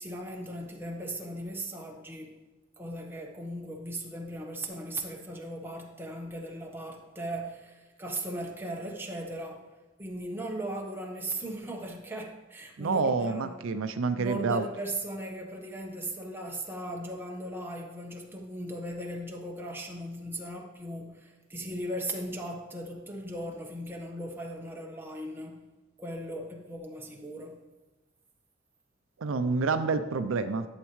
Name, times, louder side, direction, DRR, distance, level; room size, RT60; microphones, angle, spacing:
voice 1, 0.0-2.3 2.8-9.7 10.0-13.6 14.1-25.6 26.0-27.6, right 1 dB, 10° right, 0 dB, 1.2 m, -38 dB
voice 2, 12.8-14.6 29.2-30.6, right 4 dB, 75° right, 9 dB, 0.5 m, -28 dB
12.0 x 7.3 x 3.1 m, 1.1 s
head